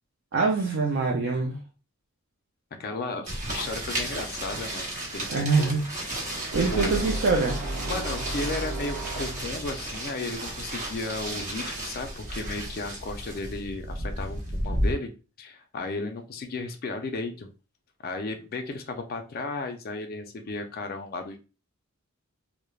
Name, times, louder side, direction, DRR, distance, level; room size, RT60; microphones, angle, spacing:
voice 1, 0.3-1.6 5.3-5.8 6.5-7.6, right 4 dB, 55° right, 0 dB, 0.4 m, -24 dB
voice 2, 2.8-5.7 6.7-6.9 7.9-15.1 15.4-17.5 18.0-21.4, left 3 dB, 45° left, 5 dB, 0.3 m, -34 dB
sound 1, 3.3-14.9, right 1 dB, 35° right, 0.8 m, -33 dB
sound 2, 6.5-9.8, right 1 dB, 80° right, 0.8 m, -33 dB
3.1 x 2.0 x 2.3 m, 0.33 s
head